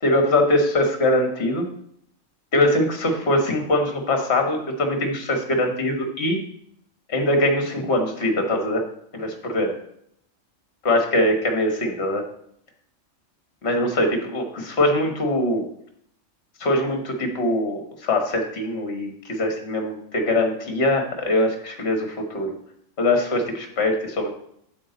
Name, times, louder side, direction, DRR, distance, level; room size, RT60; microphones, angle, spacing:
voice 1, 0.0-1.6 2.5-6.4 7.1-8.8 9.1-9.7 10.8-12.2 13.6-15.6 16.6-22.5 23.0-24.3, left 1 dB, 55° left, 4 dB, 1.7 m, -22 dB
8.6 x 8.2 x 4.0 m, 0.69 s
omnidirectional pair, 1.4 m